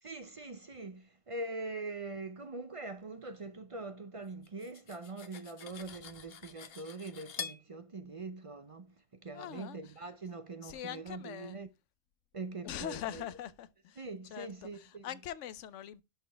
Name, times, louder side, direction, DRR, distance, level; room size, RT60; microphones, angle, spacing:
voice 1, 0.0-8.9 9.2-11.7 12.3-13.3 14.0-15.1, right 3 dB, 40° right, 0.5 m, -43 dB
Cutlery silverware, 4.4-7.6, left 7 dB, 60° left, 1.0 m, -46 dB
voice 2, 9.3-9.8 10.6-11.6 12.6-14.0 14.3-16.0, left 11 dB, 90° left, 1.0 m, -42 dB
11.0 x 4.1 x 3.3 m
omnidirectional pair, 1.2 m